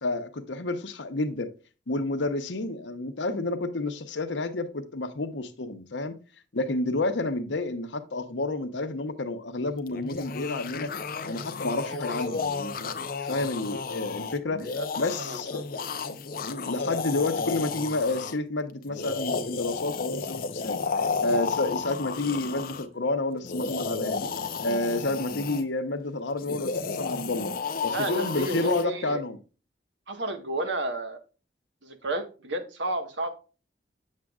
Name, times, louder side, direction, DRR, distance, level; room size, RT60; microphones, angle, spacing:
voice 1, 0.0-1.5 1.9-6.1 6.5-10.9 11.3-14.7 15.0-15.7 16.5-20.8 21.2-24.3 24.6-27.5 27.8-29.4, left 2 dB, 85° left, 0.9 m, -30 dB
sound 1, 9.9-18.4 18.9-22.8 23.4-25.6 26.4-28.8, left 4 dB, 50° left, 0.6 m, -32 dB
voice 2, 11.9-12.2 14.6-14.9 15.2-15.4 27.9-29.2 30.1-31.2 31.8-33.3, right 1 dB, 85° right, 1.4 m, -32 dB
7.5 x 7.5 x 2.4 m
head